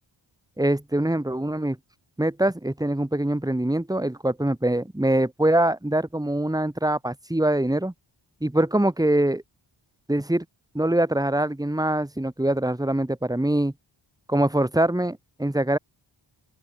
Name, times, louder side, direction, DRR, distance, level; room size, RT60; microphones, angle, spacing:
voice 1, 0.6-1.8 2.2-7.9 8.4-9.4 10.1-10.4 10.7-13.7 14.3-15.8, right 1 dB, 10° right, 1.7 m, -23 dB
open air
cardioid pair, 60°, 48 cm